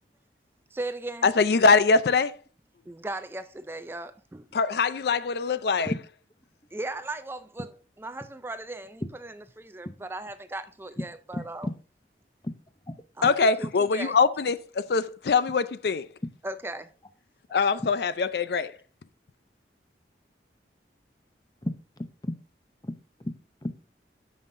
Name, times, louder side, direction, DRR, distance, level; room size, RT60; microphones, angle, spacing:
voice 1, 0.7-1.3 2.9-4.5 6.7-11.7 13.2-14.2 16.4-16.9, right 2 dB, 15° right, 0.4 m, -37 dB
voice 2, 1.2-2.4 4.5-5.9 13.2-16.1 17.5-18.8, left 4 dB, 65° left, 0.4 m, -23 dB
voice 3, 11.3-11.7 12.4-12.5 21.6-22.4 22.8-23.0 23.2-23.3 23.6-23.9, left 1 dB, 20° left, 0.6 m, -34 dB
13.5 x 5.6 x 2.6 m
head